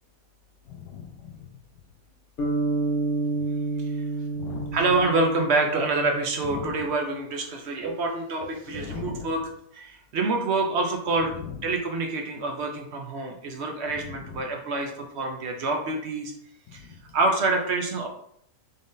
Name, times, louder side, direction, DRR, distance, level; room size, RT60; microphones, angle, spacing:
voice 1, 0.7-1.5 3.4-3.5 4.3-4.8 6.5-6.7 8.7-9.3, left 6 dB, 75° left, 4 dB, 1.2 m, -38 dB
sound 1, 2.4-6.6, right 3 dB, 50° left, 1.0 m, -29 dB
voice 2, 4.7-9.4 9.7-16.3 16.7-16.9 17.1-18.1, right 3 dB, 70° right, 3 dB, 0.6 m, -27 dB
3.7 x 3.6 x 2.6 m, 0.68 s
omnidirectional pair, 1.7 m